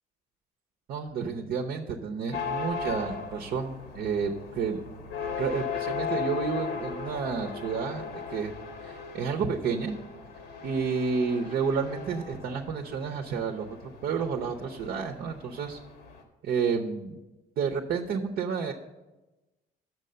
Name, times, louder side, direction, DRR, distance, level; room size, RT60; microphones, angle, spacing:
voice 1, 0.9-4.8 5.2-8.5 8.8-9.9 10.6-13.7 14.0-15.8 16.4-17.2 17.6-18.7, right 5 dB, 60° right, 3 dB, 0.7 m, -30 dB
sound 1, 2.3-16.2, left 5 dB, 85° left, 1.5 m, -37 dB
6.7 x 6.1 x 7.5 m, 1.1 s
cardioid pair, 110°, 17 cm